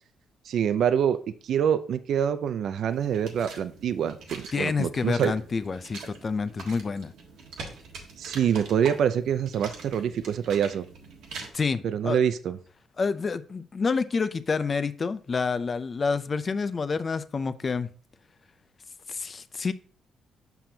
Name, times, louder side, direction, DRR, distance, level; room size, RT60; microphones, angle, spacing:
voice 1, 0.5-1.2 1.4-5.3 8.2-10.8 11.8-12.6, right 8 dB, 70° right, 0.4 m, -25 dB
sound 1, 2.9-11.5, right 4 dB, 85° right, 1.4 m, -43 dB
voice 2, 4.5-7.1 11.5-12.2 13.0-17.9 19.1-19.7, left 4 dB, 35° left, 0.5 m, -28 dB
6.9 x 5.9 x 2.8 m
cardioid pair, 90°, 0 cm